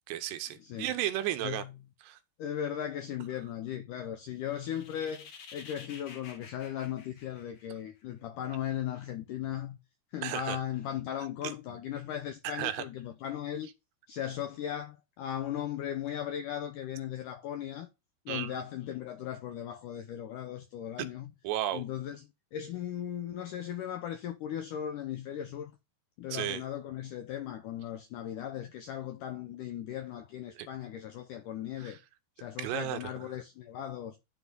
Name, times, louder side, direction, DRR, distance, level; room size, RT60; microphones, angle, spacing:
voice 1, 0.1-1.6 2.0-2.2 10.2-10.6 12.4-12.9 18.3-18.6 21.0-21.1 21.4-21.8 26.3-26.6 30.6-30.7 31.8-31.9 32.6-33.0, right 13 dB, 85° right, 2.9 m, -33 dB
voice 2, 0.6-0.9 1.4-1.8 2.4-9.8 10.1-13.7 14.1-17.9 18.3-21.3 21.7-25.7 26.2-32.0 32.4-34.2, left 10 dB, 85° left, 1.8 m, -37 dB
sound 1, 4.4-8.0, left 5 dB, 55° left, 2.2 m, -51 dB
11.5 x 4.1 x 3.8 m
omnidirectional pair, 4.7 m